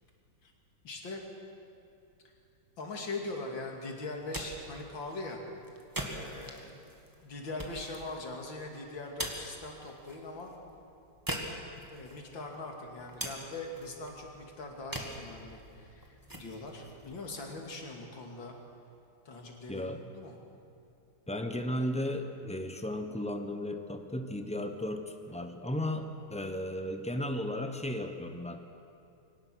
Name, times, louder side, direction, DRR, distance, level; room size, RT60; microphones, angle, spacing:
voice 1, 0.8-1.2 2.8-5.4 6.1-6.8 7.2-10.5 11.7-18.5 19.2-20.4, left 2 dB, 70° left, 1 dB, 3.2 m, -41 dB
sound 1, 4.2-18.0, right 1 dB, 10° right, 1.7 m, -44 dB
voice 2, 19.7-20.0 21.3-28.6, left 1 dB, 10° left, 6 dB, 0.4 m, -35 dB
23.0 x 18.5 x 6.4 m, 2.6 s
omnidirectional pair, 2.2 m